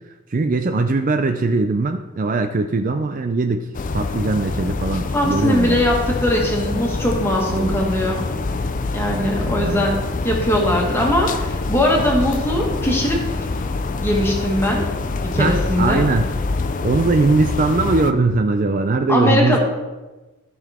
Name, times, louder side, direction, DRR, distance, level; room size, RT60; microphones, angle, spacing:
voice 1, 0.3-3.7 3.9-5.8 7.5-7.8 9.4-9.9 15.4-16.3 16.8-19.6, right 3 dB, 35° right, 7 dB, 0.4 m, -20 dB
sound 1, 3.7-18.1, left 3 dB, 35° left, 0.4 m, -25 dB
voice 2, 5.1-8.2 8.9-10.0 10.2-13.2 14.0-14.8 15.3-16.0 19.1-19.6, left 1 dB, 10° left, -2 dB, 1.7 m, -20 dB
13.5 x 5.8 x 3.6 m, 1.2 s
head